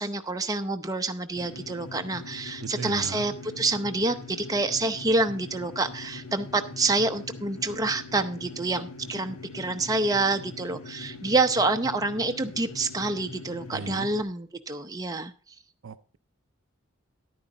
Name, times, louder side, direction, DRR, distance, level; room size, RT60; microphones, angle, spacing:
voice 1, 0.0-15.3, right 2 dB, 15° right, 6 dB, 0.7 m, -27 dB
sound 1, 1.4-14.2, left 3 dB, 85° left, 1.4 m, -42 dB
voice 2, 2.6-3.2 13.7-14.1 15.8-16.2, right 5 dB, 60° right, 13 dB, 0.5 m, -37 dB
11.0 x 9.4 x 3.8 m, 0.38 s
head